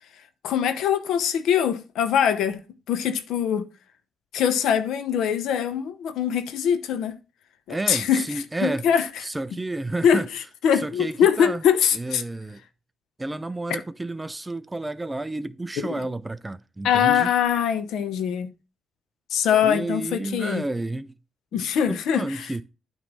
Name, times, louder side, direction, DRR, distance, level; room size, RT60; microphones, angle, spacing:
voice 1, 0.4-2.6 2.9-3.7 4.3-7.2 7.7-9.2 10.0-12.2 15.8-16.1 16.8-18.5 19.3-20.6 21.5-22.5, left 8 dB, 80° left, 0.8 m, -23 dB
voice 2, 7.7-8.8 9.2-10.3 10.8-11.6 11.9-12.6 13.2-17.3 19.6-21.1 21.5-21.6 21.9-22.6, right 2 dB, 15° right, 0.4 m, -31 dB
8.9 x 3.2 x 5.2 m
cardioid pair, 90°, 0 cm